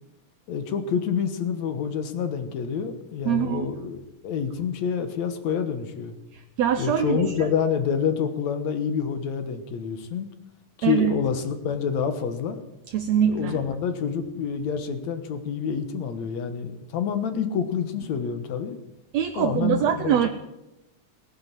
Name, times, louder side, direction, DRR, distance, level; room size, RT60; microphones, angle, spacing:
voice 1, 0.5-6.1 6.8-10.3 10.8-12.6 13.2-18.8 19.4-20.3, left 7 dB, 65° left, 9 dB, 2.4 m, -27 dB
voice 2, 3.3-3.7 6.3-7.2 10.8-11.2 12.9-13.6 19.1-20.3, right 9 dB, 70° right, 6 dB, 1.8 m, -23 dB
18.0 x 10.5 x 7.5 m, 0.93 s
omnidirectional pair, 3.7 m